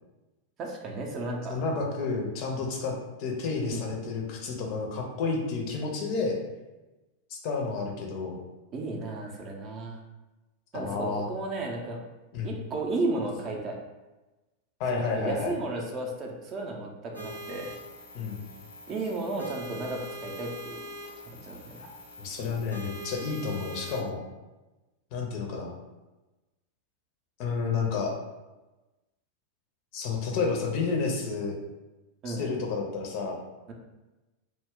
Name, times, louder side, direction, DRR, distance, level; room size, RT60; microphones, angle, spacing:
voice 1, 0.6-1.6 3.7-4.0 8.7-10.0 10.7-12.0 12.4-13.8 14.9-17.7 18.9-20.8 21.3-21.6 32.2-32.5, right 2 dB, 35° right, 0 dB, 0.5 m, -33 dB
voice 2, 1.5-6.4 7.3-8.4 10.7-11.3 12.3-12.5 14.8-15.5 18.1-18.4 22.2-24.2 25.1-25.8 27.4-28.1 29.9-31.6 32.2-33.4, left 4 dB, 45° left, 0 dB, 0.5 m, -30 dB
sound 1, 17.1-24.0, left 1 dB, 90° right, 0.8 m, -43 dB
2.2 x 2.0 x 3.6 m, 1.1 s
figure-of-eight pair, 90°, 0 cm